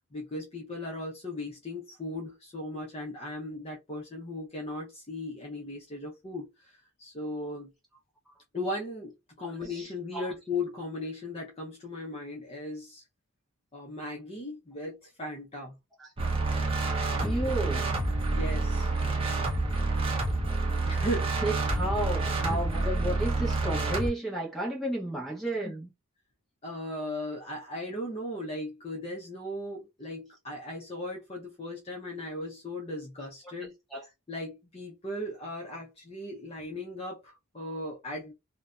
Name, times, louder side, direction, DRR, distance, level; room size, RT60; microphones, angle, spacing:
voice 1, 0.1-7.7 8.5-9.1 9.4-13.0 13.7-15.8 18.3-18.9 20.9-21.4 22.4-22.6 25.6-25.7 26.6-33.7 34.3-38.3, left 1 dB, 25° left, 0.5 m, -37 dB
voice 2, 9.6-10.3 16.0-16.1 17.2-17.9 21.4-25.9 33.9-34.0, right 1 dB, ahead, 0.8 m, -32 dB
sound 1, 16.2-24.1, right 2 dB, 25° right, 0.5 m, -28 dB
2.6 x 2.1 x 2.3 m
head